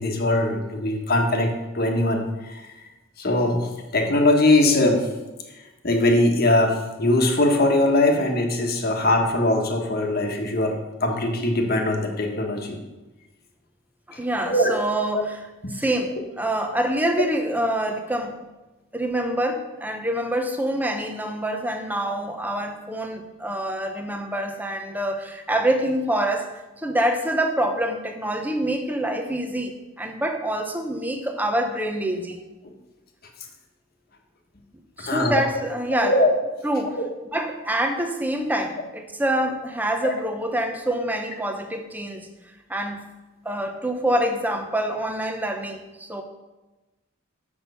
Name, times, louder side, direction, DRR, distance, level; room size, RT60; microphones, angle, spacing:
voice 1, 0.0-2.7 3.2-5.1 5.8-12.8 14.1-14.2 14.5-14.7 15.1-15.2 15.6-15.7 16.1-16.2 35.0-35.4 36.0-36.3 37.0-37.1 40.0-40.1, left 1 dB, 50° left, 3 dB, 1.3 m, -21 dB
voice 2, 14.1-15.4 15.7-18.3 18.9-26.5 26.8-32.4 35.0-36.1 36.6-37.0 37.3-42.3 42.7-43.0 43.4-46.2, right 1 dB, 10° right, 5 dB, 0.8 m, -26 dB
6.2 x 6.1 x 6.8 m, 1.1 s
head